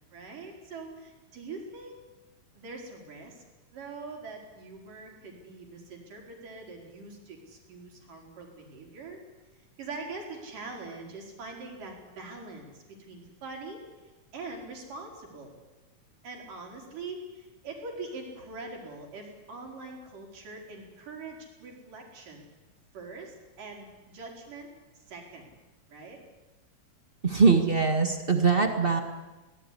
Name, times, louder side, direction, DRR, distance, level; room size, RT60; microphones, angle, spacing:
voice 1, 0.1-2.0 2.5-3.4 3.7-9.2 9.8-13.8 14.3-15.5 16.2-22.5 22.9-24.7 25.0-25.5 25.9-26.2, right 3 dB, 65° right, 1 dB, 6.1 m, -43 dB
voice 2, 27.2-29.0, right 4 dB, 50° right, 5 dB, 0.6 m, -22 dB
23.0 x 18.5 x 10.0 m, 1.1 s
omnidirectional pair, 4.1 m